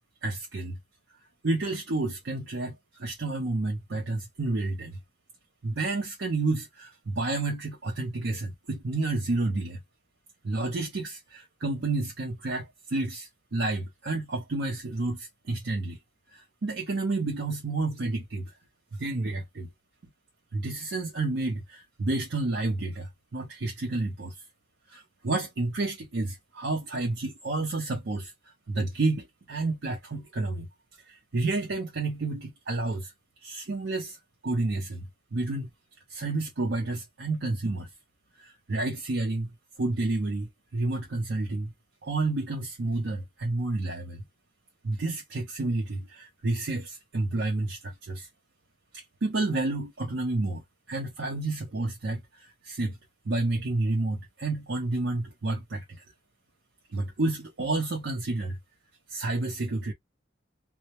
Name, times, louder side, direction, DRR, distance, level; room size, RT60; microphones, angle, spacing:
voice 1, 0.2-0.8 1.4-5.0 5.6-9.8 10.4-16.0 16.3-18.6 18.9-19.7 20.5-24.4 24.9-28.3 28.7-30.7 31.1-33.1 33.4-34.2 34.4-35.7 36.1-37.9 38.4-39.5 39.8-41.7 42.0-44.2 44.8-48.3 48.9-50.6 50.9-53.0 53.3-56.0 56.9-58.6 59.1-59.9, right 2 dB, 65° right, 0.6 m, -30 dB
2.1 x 2.1 x 2.8 m
head